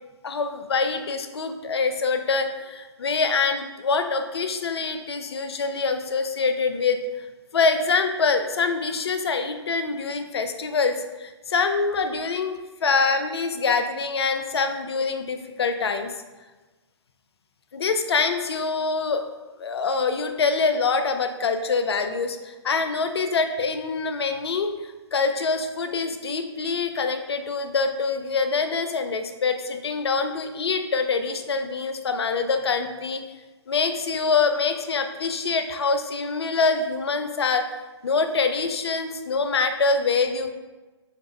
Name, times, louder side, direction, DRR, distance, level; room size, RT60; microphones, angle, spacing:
voice 1, 0.2-7.0 7.5-16.1 17.7-19.3 19.6-24.7 25.1-33.2 33.7-37.6 38.0-40.5, left 4 dB, 60° left, 7 dB, 0.5 m, -25 dB
4.0 x 2.5 x 4.4 m, 1.2 s
figure-of-eight pair, 135°, 15 cm